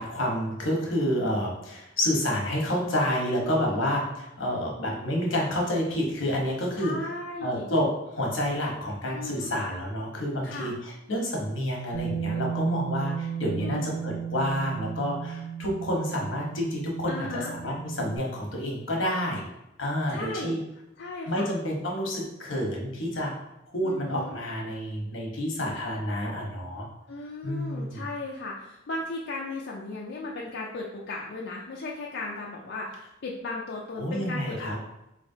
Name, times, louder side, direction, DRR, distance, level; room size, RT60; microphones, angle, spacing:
voice 1, 0.0-6.9 7.4-19.5 19.8-20.6 21.3-23.3 23.7-26.9 27.4-28.0 34.0-34.8, equal, 80° left, -1 dB, 1.0 m, -29 dB
voice 2, 3.4-3.9 6.8-7.7 9.1-9.5 10.4-10.7 13.5-13.9 17.1-17.5 20.1-20.6 21.0-21.5 23.8-24.4 27.1-34.8, left 2 dB, 60° left, -3 dB, 0.5 m, -36 dB
Bass guitar, 11.9-18.2, right 8 dB, 70° right, 0.7 m, -34 dB
3.9 x 3.1 x 2.7 m, 0.88 s
head